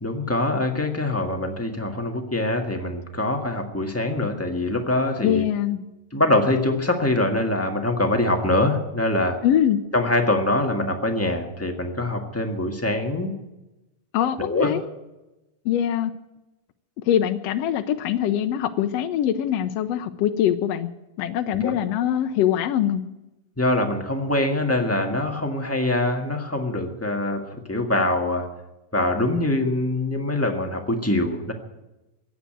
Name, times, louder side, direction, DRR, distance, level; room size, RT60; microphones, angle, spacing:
voice 1, 0.0-5.5 6.1-9.4 9.9-13.3 14.4-14.7 21.6-21.8 23.6-28.5 28.9-31.5, left 1 dB, 10° left, 3 dB, 0.9 m, -24 dB
voice 2, 5.2-5.8 9.4-9.8 14.1-14.8 15.6-16.1 17.1-20.9 21.2-23.0, left 10 dB, 75° left, 8 dB, 1.6 m, -23 dB
15.5 x 9.4 x 9.1 m, 0.98 s
omnidirectional pair, 3.3 m